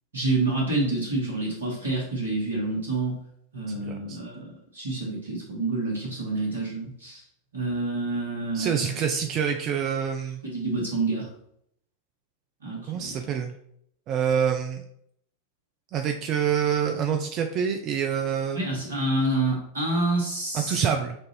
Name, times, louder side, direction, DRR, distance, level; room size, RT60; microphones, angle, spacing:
voice 1, 0.1-3.2 3.5-7.2 7.5-9.0 10.4-11.3 12.6-13.2 18.5-20.8, right 2 dB, 75° right, -3 dB, 1.7 m, -28 dB
voice 2, 3.8-4.2 8.5-10.4 12.9-13.5 14.1-14.8 15.9-18.6 20.5-21.2, right 7 dB, 35° right, 5 dB, 0.4 m, -26 dB
5.9 x 2.6 x 3.1 m, 0.70 s
figure-of-eight pair, 90°, 0 cm